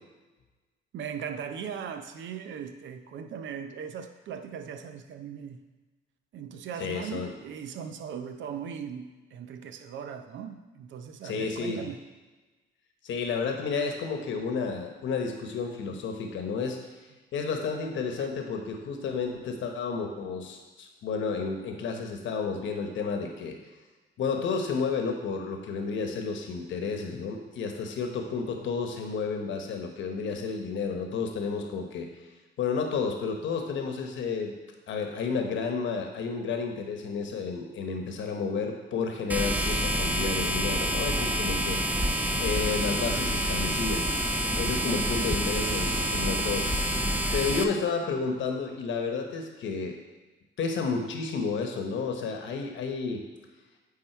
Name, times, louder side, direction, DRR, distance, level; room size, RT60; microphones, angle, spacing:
voice 1, 0.9-5.6 6.3-12.0 18.2-18.3, right 7 dB, 70° right, 8 dB, 0.6 m, -39 dB
voice 2, 6.8-7.3 11.2-11.9 13.0-16.8 17.3-23.6 24.2-32.1 32.6-34.6 34.9-41.8 42.4-44.0 44.5-46.7 47.3-50.0 50.6-53.2, left 5 dB, 70° left, 4 dB, 1.1 m, -31 dB
sound 1, 39.3-47.6, right 1 dB, 10° right, 0.5 m, -27 dB
8.8 x 3.7 x 4.5 m, 1.3 s
cardioid pair, 90°, 20 cm